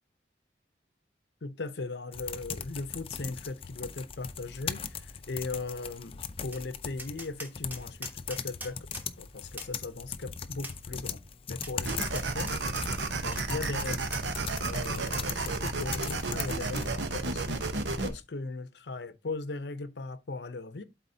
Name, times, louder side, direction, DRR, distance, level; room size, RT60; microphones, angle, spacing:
voice 1, 1.4-8.8 9.2-11.2 11.5-12.7 13.2-14.1 14.6-17.6 18.0-20.8, left 3 dB, 70° left, 0.7 m, -38 dB
sound 1, 2.1-16.9, left 7 dB, 30° left, 0.5 m, -40 dB
Tap, 6.5-6.6 7.0-9.1 9.6-9.7 10.6-10.8 11.6-12.9 13.3-13.4 14.1-14.3, right 1 dB, 10° right, 1.1 m, -42 dB
sound 2, 11.8-18.1, right 3 dB, 85° right, 0.9 m, -32 dB
12.0 x 4.1 x 2.7 m
head